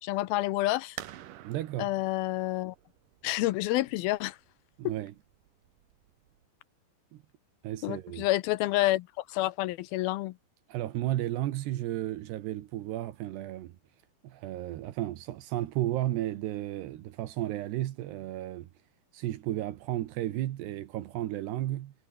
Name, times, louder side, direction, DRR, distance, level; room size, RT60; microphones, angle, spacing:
voice 1, 0.0-1.0 1.8-2.8 3.2-4.4 7.8-10.3, left 17 dB, 80° left, 2.3 m, -29 dB
sound 1, 1.0-6.5, right 13 dB, 65° right, 2.5 m, -49 dB
voice 2, 1.4-1.9 4.8-5.1 7.1-7.2 7.6-8.3 10.7-13.8 14.2-18.7 19.1-21.9, right 14 dB, 80° right, 3.4 m, -33 dB
omnidirectional pair, 4.8 m